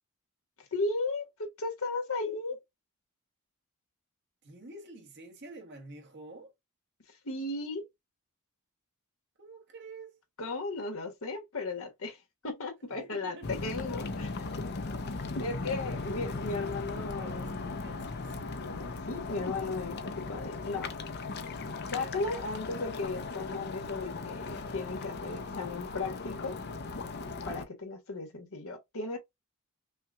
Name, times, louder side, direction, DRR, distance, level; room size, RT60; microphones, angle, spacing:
voice 1, 0.6-2.6 7.1-7.9 10.4-14.4 15.4-17.5 18.6-21.0 21.9-26.6 27.4-29.2, left 3 dB, 65° left, 1.3 m, -36 dB
voice 2, 4.4-6.5 9.4-10.2 12.9-13.5 15.8-18.3, right 2 dB, 50° right, 1.3 m, -49 dB
sound 1, 13.4-27.7, left 3 dB, 50° left, 0.6 m, -38 dB
5.6 x 2.3 x 2.5 m
head